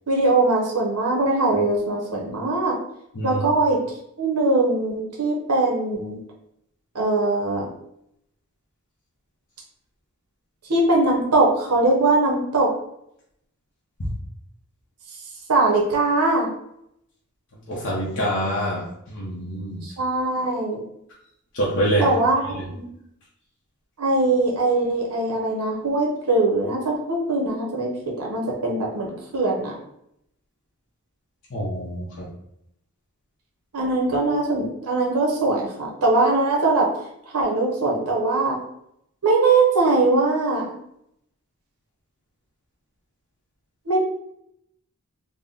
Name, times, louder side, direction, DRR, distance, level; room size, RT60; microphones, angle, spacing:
voice 1, 0.1-2.7 3.2-3.8 4.2-6.2 6.9-7.7 10.7-12.7 15.5-16.5 19.8-20.8 22.0-22.9 24.0-29.8 33.7-36.9 37.3-38.6 39.2-40.7 43.9-44.0, right 2 dB, 90° right, -2 dB, 0.9 m, -21 dB
voice 2, 17.7-19.8 21.5-22.1 22.5-22.6 31.5-32.3, equal, 60° left, -5 dB, 0.7 m, -26 dB
3.5 x 2.1 x 3.8 m, 0.76 s
head